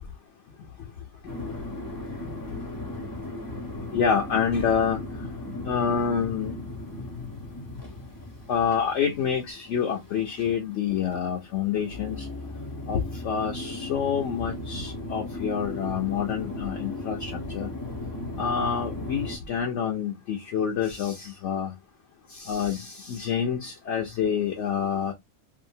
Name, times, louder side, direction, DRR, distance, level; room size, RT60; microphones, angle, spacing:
sound 1, 1.3-19.4, left 2 dB, 20° left, 0.7 m, -37 dB
voice 1, 3.9-5.0 5.6-6.5 8.5-12.3 12.9-17.7 18.4-21.7 22.4-25.1, left 7 dB, 65° left, 0.9 m, -27 dB
2.7 x 2.4 x 2.6 m
omnidirectional pair, 1.4 m